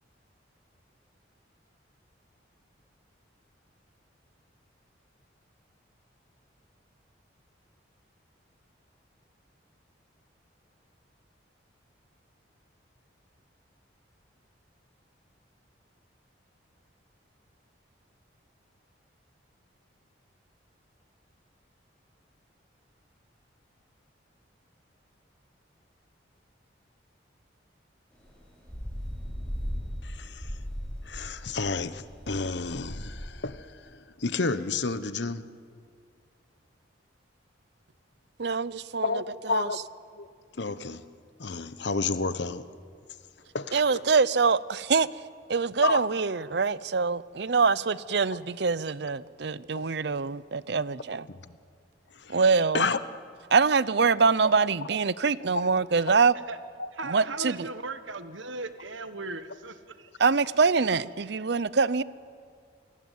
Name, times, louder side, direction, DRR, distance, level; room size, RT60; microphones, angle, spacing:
sound 1, 28.2-33.3, equal, 5° left, 6.2 m, -37 dB
voice 1, 30.0-30.6 31.0-35.5 39.0-39.8 40.1-40.3 40.6-41.0 41.4-42.7 43.5-43.8 45.8-46.0 49.7-49.9 51.3-51.4 52.1-52.4 52.7-53.0 54.2-54.3 55.3-55.4 56.8-56.9, left 4 dB, 65° left, 1.1 m, -31 dB
voice 2, 38.4-39.1 39.5-39.7 43.7-45.1 45.5-51.2 52.3-52.9 53.5-56.3 57.0-57.7 60.2-62.0, right 4 dB, 60° right, 0.6 m, -24 dB
voice 3, 56.9-60.1, right 3 dB, 80° right, 1.5 m, -38 dB
27.5 x 19.0 x 9.3 m
head